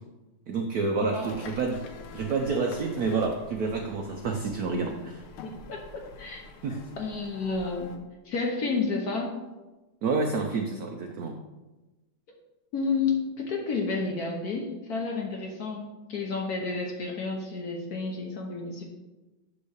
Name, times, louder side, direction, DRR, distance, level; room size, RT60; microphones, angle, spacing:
voice 1, 0.5-1.8 2.1-5.2 6.6-6.8 10.0-11.4, right 4 dB, 80° right, 4 dB, 0.8 m, -29 dB
voice 2, 1.0-1.4 5.7-6.4 6.7-8.0 8.2-9.4 12.7-18.8, left 4 dB, 55° left, 0 dB, 1.1 m, -31 dB
sound 1, 1.2-8.0, left 3 dB, 85° left, 1.7 m, -46 dB
8.0 x 3.1 x 6.3 m, 1.1 s
omnidirectional pair, 2.3 m